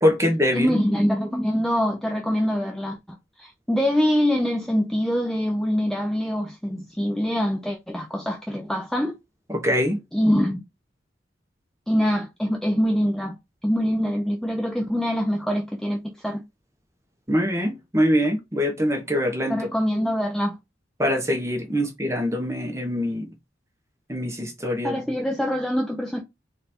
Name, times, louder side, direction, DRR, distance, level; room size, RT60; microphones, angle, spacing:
voice 1, 0.0-0.7 9.5-10.0 17.3-19.6 21.0-23.3 24.1-25.0, equal, 15° right, 1.0 m, -23 dB
voice 2, 0.5-9.1 10.1-10.6 11.9-13.4 13.6-16.0 16.2-16.4 19.5-20.6 24.8-26.2, equal, ahead, 0.5 m, -24 dB
4.0 x 2.6 x 4.3 m
head